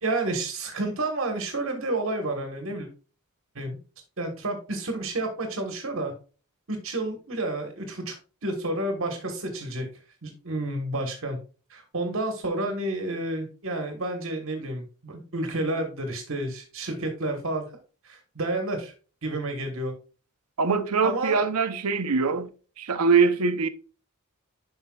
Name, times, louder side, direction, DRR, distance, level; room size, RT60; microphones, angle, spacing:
voice 1, 0.0-2.9 3.5-3.8 4.2-6.1 6.7-8.2 8.4-9.9 10.2-11.4 11.7-17.7 18.0-18.9 19.2-19.9 21.0-21.4, right 2 dB, 65° right, 1.4 m, -30 dB
voice 2, 20.6-22.5 22.8-23.7, right 5 dB, 90° right, 0.7 m, -23 dB
9.8 x 5.6 x 2.3 m
head